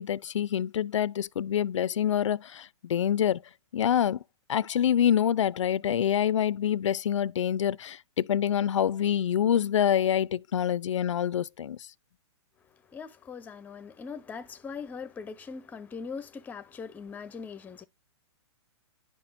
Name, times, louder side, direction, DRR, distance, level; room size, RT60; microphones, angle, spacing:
voice 1, 0.0-3.4 3.7-4.2 4.5-11.8, left 9 dB, 85° left, 0.5 m, -26 dB
voice 2, 12.7-17.8, left 5 dB, 10° left, 0.7 m, -41 dB
10.5 x 6.0 x 2.6 m
hypercardioid pair, 145°, 15 cm